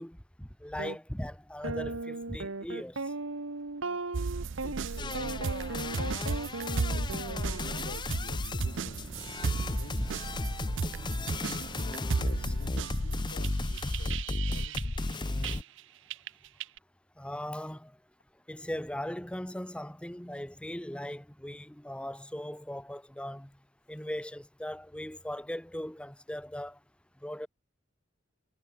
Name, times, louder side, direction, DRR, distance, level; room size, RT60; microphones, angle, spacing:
voice 1, 0.0-3.0 9.5-9.6 10.0-10.1 17.2-17.9 18.5-23.5 23.9-26.8 27.2-27.5, left 1 dB, 5° left, 1.1 m, -39 dB
sound 1, 0.8-1.0 1.6-8.0, right 3 dB, 85° right, 1.5 m, -37 dB
sound 2, 4.1-15.8 16.1-16.8, right 5 dB, 65° right, 0.5 m, -36 dB
voice 2, 4.6-5.8 6.9-9.1 9.6-10.4 11.4-14.9, left 1 dB, 60° left, 5.8 m, -49 dB
sound 3, 5.0-15.6, left 2 dB, 20° left, 0.6 m, -34 dB
head